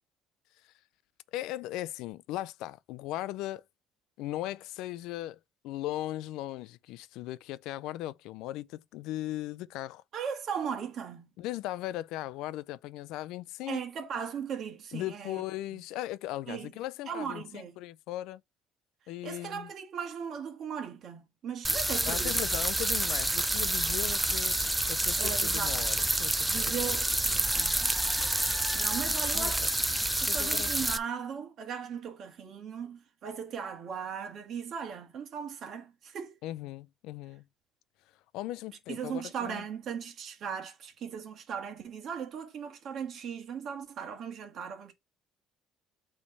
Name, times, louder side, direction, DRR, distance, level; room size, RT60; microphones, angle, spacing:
voice 1, 1.3-3.6 4.2-5.4 5.6-10.0 11.4-13.9 14.9-18.4 19.1-19.7 22.1-24.6 24.9-27.0 29.3-29.7 30.3-30.7 36.4-37.4 38.3-39.6, left 15 dB, 80° left, 0.4 m, -38 dB
voice 2, 10.1-11.3 13.7-15.4 15.7-15.8 16.5-16.7 17.1-17.8 19.2-22.4 25.2-25.8 26.5-27.9 28.7-36.3 38.9-44.9, right 7 dB, 45° right, 1.5 m, -38 dB
sound 1, 21.6-31.0, right 1 dB, 5° right, 0.5 m, -28 dB
8.4 x 3.3 x 4.1 m
cardioid pair, 155°, 0 cm